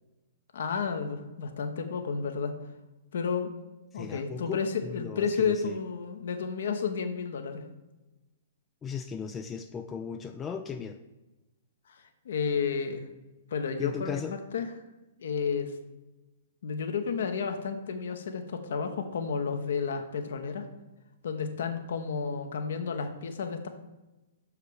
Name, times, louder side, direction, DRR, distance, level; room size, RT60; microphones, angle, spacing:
voice 1, 0.5-2.6 3.1-3.5 3.9-7.6 11.9-13.0 13.5-14.2 14.5-14.7 15.2-15.7 16.6-20.6 21.2-23.7, left 5 dB, 55° left, 7 dB, 0.9 m, -31 dB
voice 2, 3.9-5.8 8.8-11.0 13.8-14.3, left 6 dB, 15° left, 6 dB, 0.3 m, -37 dB
6.7 x 5.0 x 4.8 m, 1.0 s
figure-of-eight pair, 110°, 0 cm